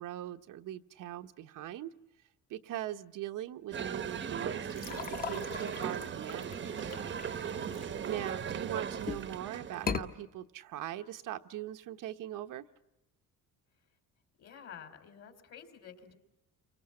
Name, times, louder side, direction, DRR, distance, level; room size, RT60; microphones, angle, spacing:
voice 1, 0.0-1.9 2.5-6.7 8.0-12.6, right 12 dB, 70° right, 8 dB, 1.0 m, -41 dB
sound 1, 3.7-9.9, right 7 dB, 35° right, 0.9 m, -38 dB
sound 2, 4.7-8.5 9.0-9.4 9.7-10.1, left 6 dB, 25° left, 1.1 m, -39 dB
voice 2, 7.1-7.7 14.4-16.2, left 7 dB, 50° left, 7 dB, 3.4 m, -51 dB
30.0 x 24.5 x 7.6 m, 0.93 s
cardioid pair, 160°, 33 cm